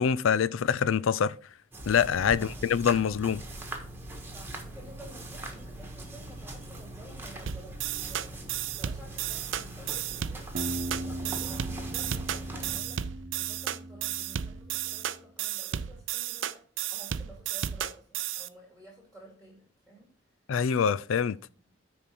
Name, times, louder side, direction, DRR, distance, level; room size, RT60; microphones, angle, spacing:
voice 1, 0.0-1.4 1.9-3.4 20.5-21.4, left 7 dB, 85° left, 0.4 m, -25 dB
sound 1, 1.7-12.8, right 1 dB, 10° right, 1.4 m, -42 dB
voice 2, 2.3-2.7 4.3-16.6 16.9-20.4 21.3-21.6, right 1 dB, 5° left, 2.4 m, -53 dB
sound 2, 7.5-18.5, right 10 dB, 70° right, 0.5 m, -33 dB
sound 3, 10.5-15.2, right 1 dB, 45° right, 0.9 m, -39 dB
9.9 x 4.4 x 5.9 m
head